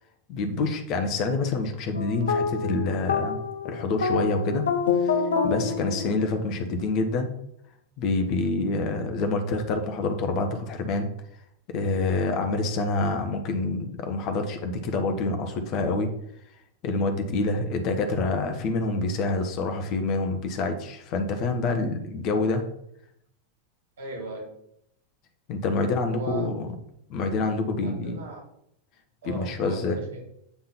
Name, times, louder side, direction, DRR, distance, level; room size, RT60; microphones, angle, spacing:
voice 1, 0.3-3.4 3.6-4.7 5.0-5.2 5.4-7.3 8.0-11.1 11.7-16.1 16.8-22.6 25.5-26.7 27.1-28.2 29.2-30.0, left 3 dB, 40° left, 5 dB, 1.2 m, -27 dB
sound 1, 1.9-6.6, left 5 dB, 65° left, 0.8 m, -27 dB
voice 2, 24.0-24.5 26.1-26.5 27.8-28.4 29.2-30.3, right 2 dB, 65° right, 1 dB, 3.0 m, -38 dB
8.5 x 3.9 x 5.7 m, 0.74 s
figure-of-eight pair, 90°, 0 cm